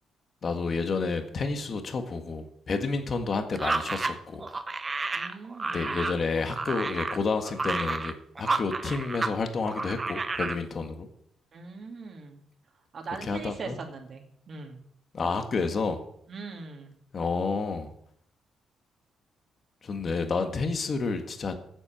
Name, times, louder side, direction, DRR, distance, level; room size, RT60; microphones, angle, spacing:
voice 1, 0.4-4.4 5.7-11.1 13.3-13.7 15.1-16.0 17.1-17.9 19.8-21.5, left 4 dB, 45° left, 6 dB, 1.7 m, -30 dB
sound 1, 3.5-9.4 9.6-10.6, right 3 dB, 25° right, 0.9 m, -31 dB
voice 2, 5.1-5.8 11.5-12.4 12.9-14.8 16.3-17.0, right 4 dB, 50° right, 3 dB, 2.2 m, -41 dB
9.9 x 7.4 x 8.5 m, 0.71 s
cardioid pair, 90°, 0 cm